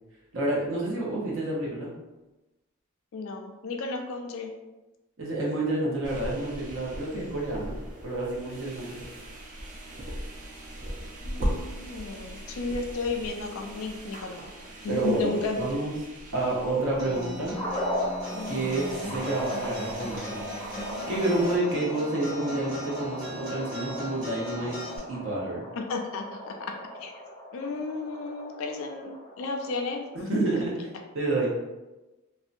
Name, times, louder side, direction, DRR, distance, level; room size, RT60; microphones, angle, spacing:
voice 1, 0.3-1.9 5.2-7.8 8.0-9.0 14.9-15.9 16.3-17.5 18.5-20.4 21.1-24.8 25.1-25.6 30.3-30.9 31.1-31.6, right 2 dB, 65° right, -4 dB, 0.7 m, -29 dB
voice 2, 3.1-4.5 11.2-14.4 14.8-15.6 18.3-18.7 25.7-26.7 27.0-27.1 27.5-30.6, left 3 dB, 65° left, 3 dB, 0.4 m, -33 dB
sound 1, 6.0-21.6, equal, 40° right, 0.4 m, -39 dB
Acoustic guitar, 17.0-25.0, equal, 20° right, 1.2 m, -39 dB
sound 2, 17.5-29.8, left 1 dB, 15° left, 0.6 m, -37 dB
2.6 x 2.1 x 2.4 m, 1.1 s
head